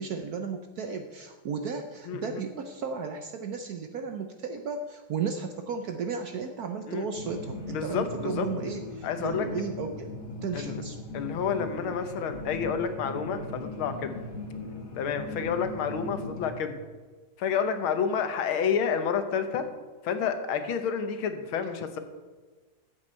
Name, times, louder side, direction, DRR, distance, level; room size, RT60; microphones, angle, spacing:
voice 1, 0.0-10.1 10.4-11.0, right 5 dB, 65° right, 7 dB, 1.0 m, -34 dB
voice 2, 2.1-2.4 6.9-7.1 7.7-8.5 9.0-9.5 10.5-10.8 11.1-14.2 15.0-16.8 17.4-19.7 20.0-22.0, left 7 dB, 80° left, 9 dB, 1.8 m, -29 dB
sound 1, 7.2-16.5, left 2 dB, 45° left, 1.8 m, -39 dB
13.5 x 8.0 x 4.5 m, 1.4 s
omnidirectional pair, 2.3 m